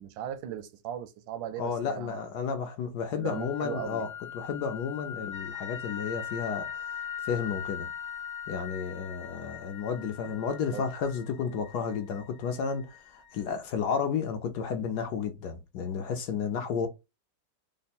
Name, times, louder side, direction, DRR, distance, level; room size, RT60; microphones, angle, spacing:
voice 1, 0.0-2.2 3.2-4.1 10.3-10.4 10.7-10.8, right 10 dB, 85° right, 1.3 m, -38 dB
voice 2, 1.6-4.1 4.3-6.8 7.2-7.9 8.5-16.9, left 6 dB, 70° left, 1.0 m, -32 dB
sound 1, 3.2-11.2, left 8 dB, 85° left, 1.3 m, -40 dB
sound 2, 5.3-13.5, left 8 dB, 5° left, 0.6 m, -49 dB
3.5 x 2.1 x 4.1 m
omnidirectional pair, 2.1 m